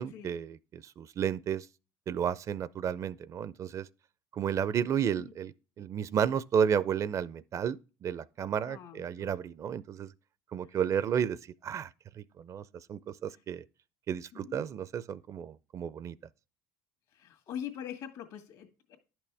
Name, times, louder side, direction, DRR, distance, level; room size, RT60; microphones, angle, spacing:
voice 1, 0.0-1.7 2.1-3.9 4.3-10.1 10.5-11.4 11.6-11.9 12.2-12.6 12.9-13.6 14.1-16.2, right 8 dB, 45° right, 0.4 m, -32 dB
voice 2, 8.6-9.3 13.3-13.4 14.3-14.7 17.1-19.0, left 9 dB, 70° left, 1.9 m, -43 dB
10.5 x 6.0 x 3.4 m
supercardioid pair, 90°, 7 cm